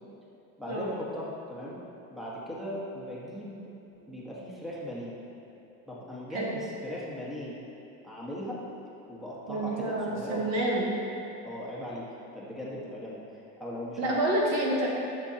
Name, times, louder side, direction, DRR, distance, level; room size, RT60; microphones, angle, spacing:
voice 1, 0.6-1.8 2.1-3.7 4.1-5.1 5.9-7.6 8.0-8.6 9.1-10.8 11.4-12.1 12.3-14.2, left 1 dB, ahead, -6 dB, 1.6 m, -38 dB
voice 2, 9.5-11.0 14.0-14.9, right 1 dB, 45° right, -3 dB, 1.5 m, -28 dB
11.5 x 6.4 x 3.0 m, 2.8 s
supercardioid pair, 110°, 36 cm